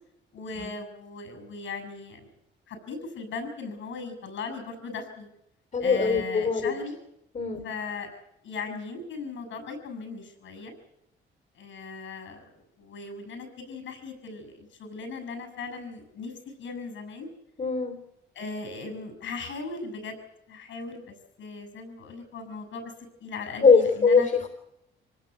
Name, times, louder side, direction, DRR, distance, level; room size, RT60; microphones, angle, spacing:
voice 1, 0.3-2.3 2.7-5.3 5.8-6.9 7.6-10.7 11.6-12.5 12.8-16.3 16.6-17.3 18.3-20.2 20.5-22.8 23.2-24.3, left 4 dB, 75° left, 8 dB, 7.2 m, -38 dB
voice 2, 5.7-6.7 7.3-7.7 17.6-18.0 23.6-24.5, left 5 dB, 40° left, 6 dB, 3.5 m, -22 dB
25.0 x 19.5 x 8.2 m, 0.82 s
cardioid pair, 90°, 20 cm